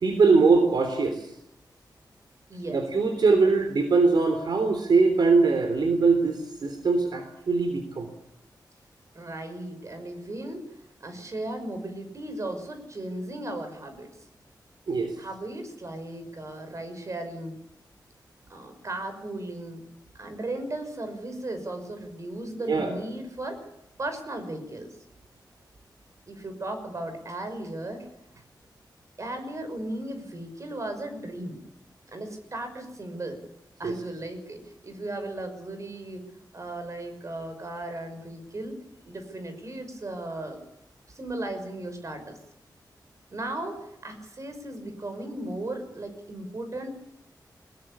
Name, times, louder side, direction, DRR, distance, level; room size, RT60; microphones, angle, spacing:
voice 1, 0.0-1.3 2.7-8.1 14.9-15.1 22.7-22.9 33.8-33.9, right 4 dB, 70° right, 7 dB, 3.3 m, -22 dB
voice 2, 2.5-2.8 9.1-10.6 11.0-14.1 15.2-17.6 18.5-19.8 20.1-23.7 24.0-24.9 26.3-28.1 29.2-31.6 32.1-33.4 33.8-36.2 36.5-38.8 39.0-40.6 41.1-42.4 43.3-46.9, right 1 dB, 45° right, 7 dB, 6.0 m, -36 dB
23.0 x 21.5 x 8.6 m, 0.78 s
wide cardioid pair, 130°, 8 cm